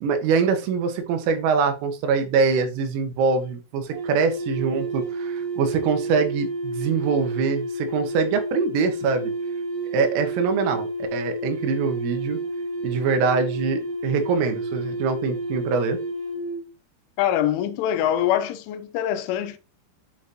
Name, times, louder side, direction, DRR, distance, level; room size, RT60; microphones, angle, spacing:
voice 1, 0.0-9.3 9.9-12.4 12.8-16.0, right 5 dB, 80° right, 3.7 m, -24 dB
sound 1, 3.9-16.6, right 2 dB, 45° right, 2.9 m, -30 dB
voice 2, 17.2-19.6, left 11 dB, 85° left, 3.0 m, -24 dB
9.4 x 5.0 x 2.9 m
omnidirectional pair, 5.9 m